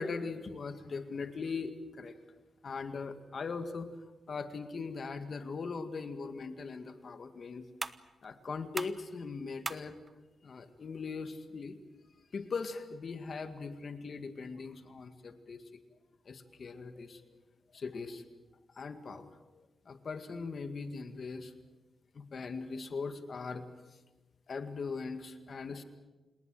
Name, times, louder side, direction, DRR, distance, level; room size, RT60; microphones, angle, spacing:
voice 1, 0.0-2.2 2.6-4.0 4.3-7.7 8.2-10.0 10.4-11.8 12.3-15.8 16.3-17.4 17.7-18.3 18.7-21.5 22.1-23.7 24.5-25.8, left 4 dB, 55° left, 8 dB, 2.0 m, -40 dB
sound 1, 6.3-13.3, right 3 dB, 30° right, 1.0 m, -47 dB
28.5 x 19.0 x 7.8 m, 1.2 s
cardioid pair, 85°, 0 cm